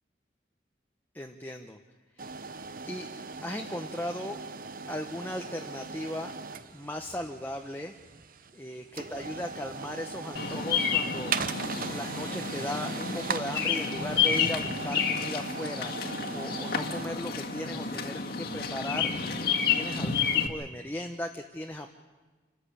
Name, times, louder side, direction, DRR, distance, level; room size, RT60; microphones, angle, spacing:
voice 1, 1.1-1.8 2.9-3.1 3.4-4.4 4.9-6.3 6.7-7.9 8.5-11.3 11.8-15.9 16.3-21.9, left 1 dB, 10° left, 3 dB, 0.9 m, -37 dB
sound 1, 2.2-19.0, right 5 dB, 50° right, 0.9 m, -39 dB
Bird vocalization bird call bird song, 10.4-20.5, left 6 dB, 55° left, 2.0 m, -30 dB
27.5 x 13.5 x 8.7 m, 1.4 s
head